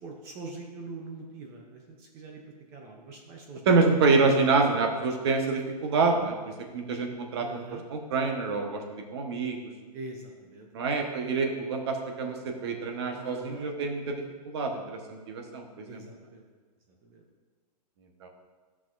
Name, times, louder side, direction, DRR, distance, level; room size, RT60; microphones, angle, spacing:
voice 1, 0.0-3.9 7.4-7.8 9.9-10.7 13.1-13.7 15.9-16.4 17.0-17.2, right 3 dB, 10° right, 1 dB, 0.4 m, -43 dB
voice 2, 3.7-9.7 10.7-16.0 18.2-18.3, right 4 dB, 40° right, 4 dB, 1.0 m, -27 dB
13.0 x 6.0 x 2.4 m, 1.4 s
hypercardioid pair, 170°, 21 cm